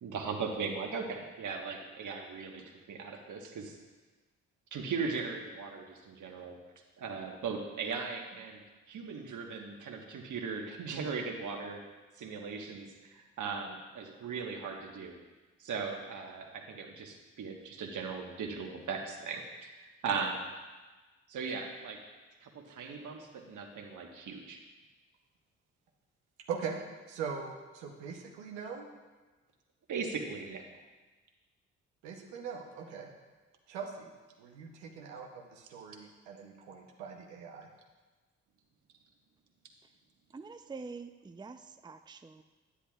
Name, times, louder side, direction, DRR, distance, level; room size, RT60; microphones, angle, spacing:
voice 1, 0.0-3.7 4.7-6.6 7.0-8.6 8.9-11.8 12.2-15.2 15.6-19.8 20.0-20.5 21.3-22.0 22.4-24.6 29.9-30.6, right 5 dB, 60° right, 2 dB, 1.4 m, -38 dB
voice 2, 27.1-28.9 32.0-33.1 33.7-34.1 34.4-37.7, right 6 dB, 90° right, 1 dB, 0.9 m, -41 dB
voice 3, 40.3-42.4, right 4 dB, 15° right, 7 dB, 0.5 m, -46 dB
10.0 x 9.9 x 2.4 m, 1.3 s
hypercardioid pair, 45°, 33 cm